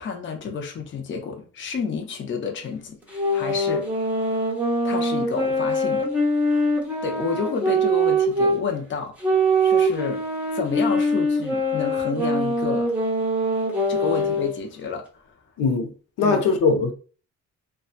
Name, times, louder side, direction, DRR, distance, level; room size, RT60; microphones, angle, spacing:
voice 1, 0.0-3.9 4.8-6.1 6.5-6.7 7.0-10.2 10.5-12.9 13.9-15.3 16.2-16.4, left 5 dB, 40° left, 0.6 m, -30 dB
sound 1, 3.1-8.6 9.2-14.6, right 1 dB, 5° right, 0.8 m, -23 dB
voice 2, 15.6-15.9 16.2-16.9, left 4 dB, 85° left, 0.6 m, -20 dB
2.7 x 2.2 x 2.4 m
cardioid pair, 125°, 31 cm